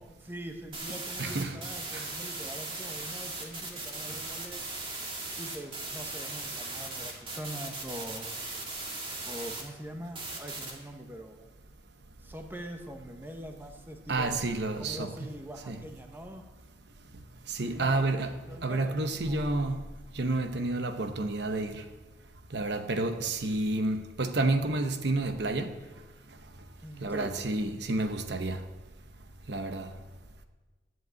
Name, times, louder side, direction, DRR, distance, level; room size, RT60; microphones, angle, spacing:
voice 1, 0.0-4.6 5.3-8.3 9.2-11.5 12.2-14.4 14.8-16.4 17.8-19.5 26.8-27.3, equal, 10° right, 1.0 m, -43 dB
sound 1, 0.7-9.6 10.2-10.7, right 3 dB, 25° right, 2.1 m, -38 dB
voice 2, 1.2-1.6 1.9-2.0 14.1-15.3 15.7-15.8 17.5-19.9 20.1-21.8 22.5-25.8 27.0-28.6 29.5-29.9, right 2 dB, 65° right, 0.9 m, -30 dB
11.0 x 7.9 x 9.3 m
head